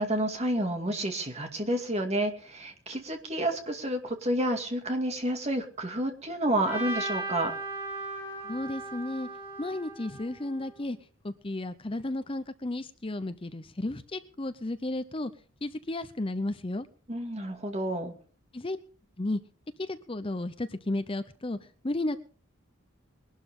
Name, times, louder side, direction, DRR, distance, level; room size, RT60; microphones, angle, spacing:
voice 1, 0.0-7.5 17.1-18.1, right 1 dB, 30° right, 4 dB, 2.4 m, -30 dB
Trumpet, 6.6-10.8, right 2 dB, 10° right, 6.3 m, -37 dB
voice 2, 8.4-9.3 9.6-11.0 11.2-15.3 15.6-16.9 18.5-18.8 19.2-19.4 19.8-21.6 21.8-22.2, left 2 dB, 25° left, 12 dB, 0.6 m, -33 dB
22.0 x 12.0 x 3.7 m, 0.40 s
head